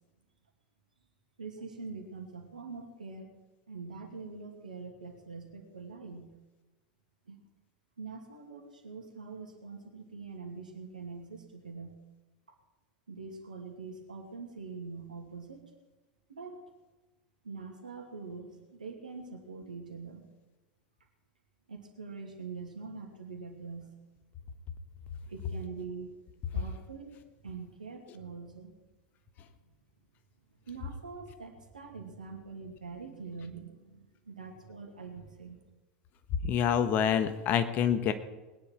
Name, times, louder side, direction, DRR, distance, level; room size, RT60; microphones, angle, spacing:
voice 1, 1.4-3.3 3.7-6.3 7.3-7.4 8.0-12.0 13.1-15.7 16.3-16.6 17.4-20.2 21.7-23.9 25.3-26.2 26.5-28.7 30.6-35.6, right 4 dB, 85° right, 3 dB, 2.4 m, -44 dB
voice 2, 36.4-38.1, left 8 dB, 45° left, 10 dB, 1.4 m, -26 dB
21.0 x 10.0 x 4.6 m, 1.1 s
hypercardioid pair, 85°, 4 cm